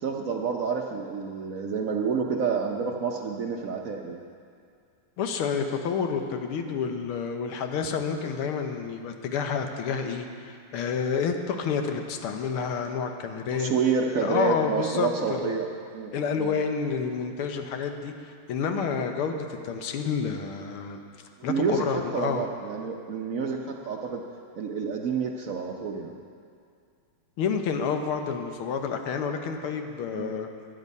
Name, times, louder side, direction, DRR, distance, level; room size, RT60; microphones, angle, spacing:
voice 1, 0.0-4.2 13.5-15.7 15.9-16.1 16.4-16.6 21.4-24.2 24.6-26.1 30.2-30.3, right 5 dB, 60° right, 1 dB, 0.8 m, -29 dB
voice 2, 5.2-13.7 14.2-15.5 16.1-21.0 21.4-22.5 27.4-30.5, left 6 dB, 90° left, 5 dB, 1.8 m, -29 dB
15.5 x 10.0 x 5.4 m, 2.3 s
omnidirectional pair, 2.3 m